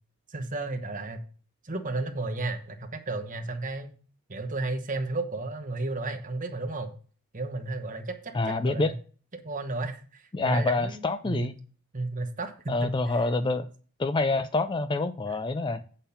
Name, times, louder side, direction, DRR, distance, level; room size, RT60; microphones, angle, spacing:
voice 1, 0.3-1.2 1.6-3.9 4.3-6.9 7.3-8.9 9.4-11.5 11.9-13.3 15.3-15.4, right 2 dB, 35° right, 5 dB, 1.1 m, -33 dB
voice 2, 8.3-8.9 10.3-11.5 12.7-13.7 14.0-15.8, left 2 dB, 20° left, 11 dB, 0.3 m, -26 dB
8.6 x 5.5 x 5.6 m, 0.40 s
head